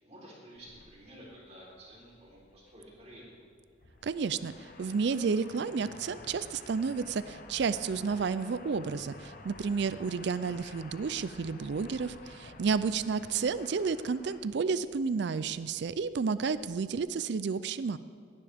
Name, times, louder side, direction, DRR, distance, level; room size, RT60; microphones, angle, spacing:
voice 1, 0.0-3.3, equal, 35° right, -4 dB, 3.8 m, -52 dB
sound 1, 0.5-17.1, left 3 dB, 45° left, 0.9 m, -52 dB
voice 2, 4.0-4.5 4.8-18.0, right 5 dB, 60° right, 15 dB, 0.4 m, -31 dB
17.5 x 11.5 x 3.5 m, 2.3 s
head